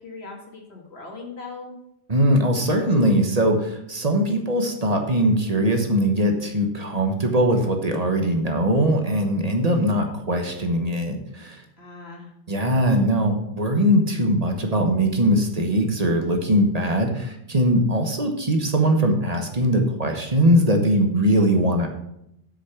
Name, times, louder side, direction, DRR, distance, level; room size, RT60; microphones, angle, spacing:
voice 1, 0.0-1.7 11.8-13.1, left 4 dB, 85° left, 0 dB, 2.2 m, -40 dB
voice 2, 2.1-11.6 12.5-21.9, equal, 40° right, 4 dB, 1.2 m, -21 dB
8.3 x 6.3 x 5.9 m, 0.80 s
omnidirectional pair, 1.0 m